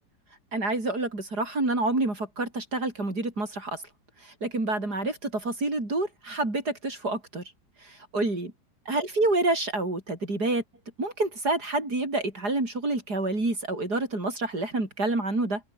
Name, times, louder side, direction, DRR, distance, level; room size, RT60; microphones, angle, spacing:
voice 1, 0.5-3.8 4.2-7.4 7.8-8.5 8.9-10.6 11.0-15.6, right 2 dB, 60° right, 7.0 m, -28 dB
omnidirectional pair, 2.0 m